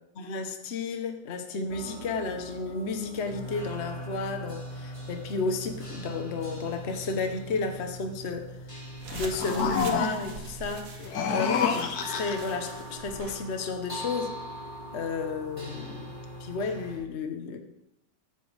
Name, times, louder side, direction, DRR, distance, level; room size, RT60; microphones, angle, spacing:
voice 1, 0.2-8.5 9.1-10.9 11.3-14.4 14.9-16.1 16.4-17.6, left 4 dB, 45° left, 6 dB, 1.2 m, -32 dB
sound 1, 1.7-17.0, equal, 15° left, 3.0 m, -41 dB
sound 2, 9.0-13.4, right 5 dB, 55° right, 1.5 m, -43 dB
sound 3, 9.1-10.4 11.0-12.6, left 6 dB, 60° left, 1.4 m, -29 dB
14.5 x 11.5 x 3.4 m, 0.82 s
omnidirectional pair, 1.9 m